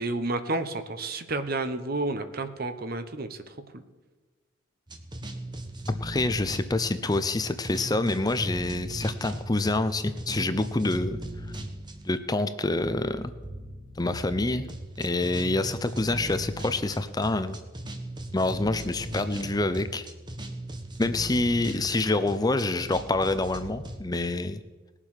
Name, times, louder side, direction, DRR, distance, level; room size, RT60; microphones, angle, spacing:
voice 1, 0.0-3.4 3.7-3.8, right 2 dB, 45° right, 9 dB, 1.1 m, -30 dB
sound 1, 4.9-12.2 12.8-24.0, right 1 dB, 20° right, 1.3 m, -38 dB
voice 2, 5.9-11.2 12.0-13.3 14.0-14.7 15.0-17.6 18.3-20.1 21.0-24.6, left 2 dB, 20° left, 11 dB, 0.5 m, -27 dB
19.5 x 7.5 x 6.5 m, 1.3 s
head